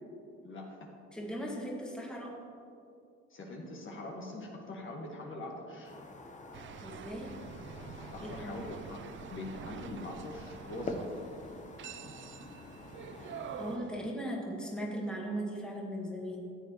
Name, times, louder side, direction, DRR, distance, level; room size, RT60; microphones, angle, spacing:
voice 1, 0.4-0.8 3.3-5.9 8.1-9.0 9.3-11.1, left 2 dB, 45° left, -1 dB, 1.6 m, -43 dB
voice 2, 1.1-2.4 6.8-7.4 8.2-8.5 13.6-16.5, equal, 5° left, -3 dB, 1.9 m, -38 dB
sound 1, 5.8-13.8, left 3 dB, 25° left, 1.0 m, -46 dB
sound 2, 6.5-14.1, right 8 dB, 40° right, 0.4 m, -47 dB
14.0 x 7.9 x 3.1 m, 2.6 s
supercardioid pair, 80°, 29 cm